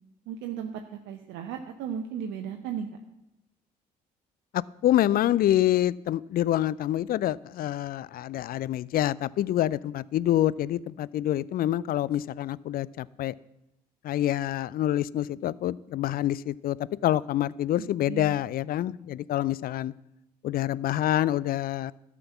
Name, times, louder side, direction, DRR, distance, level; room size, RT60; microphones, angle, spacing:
voice 1, 0.3-2.9 17.8-18.3, right 8 dB, 65° right, 5 dB, 0.8 m, -36 dB
voice 2, 4.5-13.3 14.0-19.9 20.4-21.9, left 13 dB, 45° left, 22 dB, 0.4 m, -26 dB
13.0 x 6.1 x 7.2 m, 0.90 s
figure-of-eight pair, 50°, 21 cm